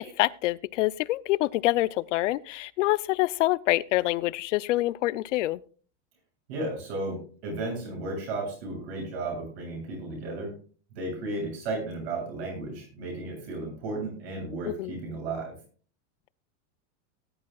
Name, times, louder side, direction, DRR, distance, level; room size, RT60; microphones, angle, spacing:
voice 1, 0.0-5.6 14.7-14.9, left 17 dB, 75° left, 0.6 m, -26 dB
voice 2, 6.5-10.5 10.9-15.5, right 2 dB, 55° right, 7.6 m, -34 dB
18.5 x 11.0 x 2.4 m
supercardioid pair, 175°, 37 cm